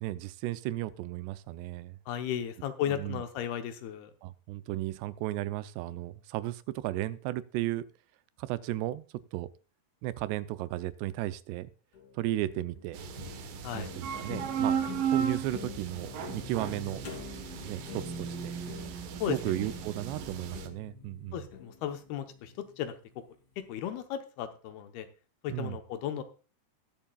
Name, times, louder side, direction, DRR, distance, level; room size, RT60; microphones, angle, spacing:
voice 1, 0.0-2.0 2.9-3.2 4.2-7.8 8.4-9.0 9.3-9.5 10.0-11.7 12.1-13.0 13.7-14.8 15.1-17.0 17.6-18.5 19.3-21.4 25.5-25.8, right 15 dB, 85° right, 15 dB, 2.8 m, -35 dB
voice 2, 2.1-4.1 13.6-13.9 14.8-14.9 19.2-19.5 21.3-22.9 23.7-25.1 25.4-26.2, left 10 dB, 75° left, 9 dB, 2.8 m, -35 dB
sound 1, 11.9-23.1, left 6 dB, 50° left, 4.1 m, -47 dB
sound 2, 12.9-20.7, right 7 dB, 65° right, 2.6 m, -35 dB
21.0 x 7.3 x 2.4 m, 0.36 s
omnidirectional pair, 4.9 m